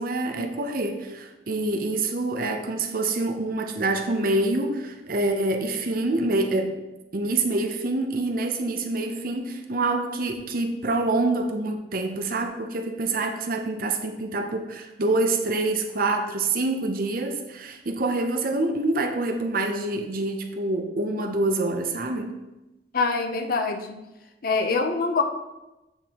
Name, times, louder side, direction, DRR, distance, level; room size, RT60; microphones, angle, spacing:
voice 1, 0.0-6.7 7.1-22.3, right 2 dB, 55° right, 4 dB, 0.7 m, -26 dB
voice 2, 22.9-23.8 24.4-25.2, left 4 dB, 55° left, 6 dB, 0.6 m, -24 dB
8.0 x 5.4 x 2.9 m, 1.0 s
head